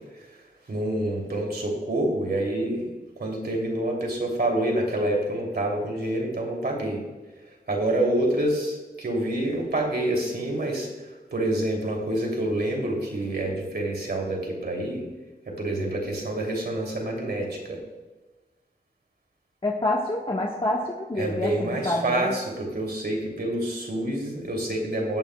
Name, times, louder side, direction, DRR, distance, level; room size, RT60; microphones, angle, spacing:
voice 1, 0.7-2.9 3.2-7.0 7.7-10.9 11.3-15.0 15.5-17.8 21.2-25.2, right 1 dB, 70° right, 0 dB, 2.8 m, -27 dB
voice 2, 19.6-22.4, left 1 dB, 30° left, -2 dB, 1.2 m, -27 dB
16.0 x 8.8 x 2.2 m, 1.2 s
wide cardioid pair, 80°, 17 cm